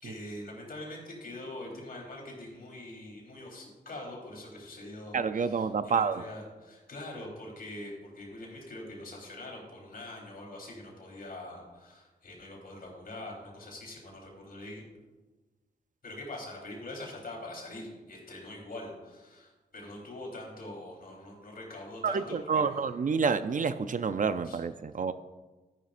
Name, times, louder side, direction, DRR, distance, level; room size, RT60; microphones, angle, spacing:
voice 1, 0.0-14.8 16.0-22.9 24.4-24.6, left 1 dB, 65° left, -2 dB, 3.9 m, -44 dB
voice 2, 5.1-6.2 22.0-25.1, right 5 dB, 55° right, 11 dB, 0.5 m, -28 dB
13.5 x 11.0 x 2.6 m, 1.2 s
wide cardioid pair, 90°, 16 cm